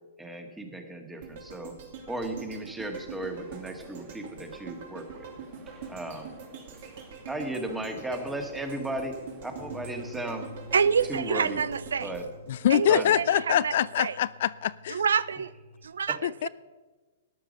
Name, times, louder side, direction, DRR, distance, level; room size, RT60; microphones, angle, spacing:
voice 1, 0.2-1.7 2.1-5.3 5.9-6.3 7.3-9.1 9.4-10.5 11.1-11.6 12.0-12.2 12.9-13.2, right 1 dB, 5° right, 5 dB, 1.7 m, -35 dB
sound 1, 1.2-13.4 13.8-13.9, right 5 dB, 60° right, 2.8 m, -45 dB
sound 2, 3.2-11.6, right 2 dB, 25° right, 2.3 m, -53 dB
sound 3, 9.6-15.9, left 2 dB, 35° left, 1.4 m, -49 dB
voice 2, 10.7-12.1 12.7-14.2 14.9-15.5 15.8-16.5, right 6 dB, 85° right, 19 dB, 0.4 m, -27 dB
voice 3, 12.5-15.0 16.2-16.5, left 11 dB, 60° left, 19 dB, 0.3 m, -24 dB
13.0 x 10.0 x 5.3 m, 1.3 s
hypercardioid pair, 130°, 0 cm